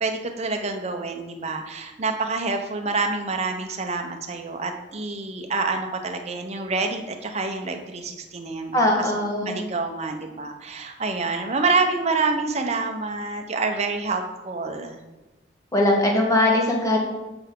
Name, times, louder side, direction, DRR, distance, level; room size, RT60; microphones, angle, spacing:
voice 1, 0.0-9.1 9.4-15.0, right 3 dB, 35° right, 4 dB, 0.6 m, -27 dB
voice 2, 8.7-9.6 15.7-17.0, left 1 dB, 15° left, -1 dB, 1.1 m, -20 dB
7.8 x 5.6 x 3.7 m, 1.1 s
head